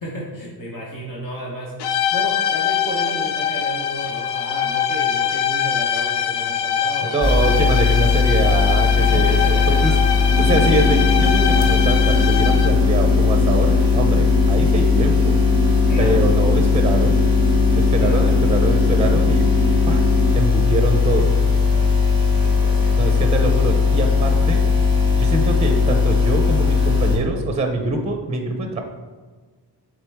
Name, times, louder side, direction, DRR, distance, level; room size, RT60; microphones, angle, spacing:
voice 1, 0.0-1.7 2.1-7.3 9.0-9.8 10.6-10.7 15.9-16.1 18.0-18.4 21.6-22.2 22.4-23.1, equal, 55° left, -4 dB, 1.2 m, -33 dB
sound 1, 1.8-12.9, left 8 dB, 70° left, 0.5 m, -23 dB
voice 2, 7.0-9.9 10.4-15.3 16.0-17.1 17.8-19.5 19.9-20.0 20.3-21.3 23.0-24.6 25.2-28.8, right 2 dB, 15° right, 4 dB, 0.5 m, -24 dB
sound 2, 7.2-27.2, left 5 dB, 10° left, 1.2 m, -18 dB
sound 3, 10.3-20.3, equal, 35° left, 1.5 m, -24 dB
7.5 x 3.6 x 3.4 m, 1.4 s
wide cardioid pair, 140°, 41 cm